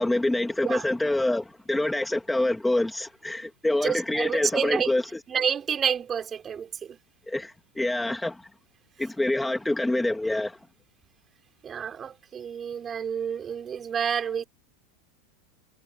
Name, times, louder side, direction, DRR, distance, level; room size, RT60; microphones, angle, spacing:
voice 1, 0.0-5.0 7.3-8.5 9.0-10.6, left 1 dB, 5° left, 2.7 m, -26 dB
voice 2, 3.8-4.9 5.3-7.0 11.6-14.4, right 7 dB, 25° right, 5.3 m, -29 dB
supercardioid pair, 120°, 0 cm